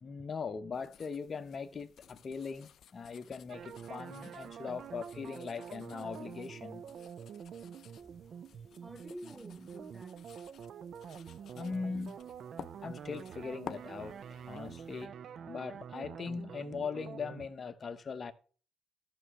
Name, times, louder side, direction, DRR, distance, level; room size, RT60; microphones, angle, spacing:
voice 1, 0.0-6.9 11.5-12.2 12.8-15.1 15.4-18.3, left 5 dB, 40° left, 1.0 m, -40 dB
sound 1, 0.7-15.1, left 9 dB, 65° left, 0.4 m, -54 dB
sound 2, 3.5-17.5, right 8 dB, 65° right, 0.4 m, -47 dB
voice 2, 8.0-10.2, right 1 dB, 15° right, 0.6 m, -50 dB
13.5 x 6.2 x 3.2 m
cardioid pair, 90°, 0 cm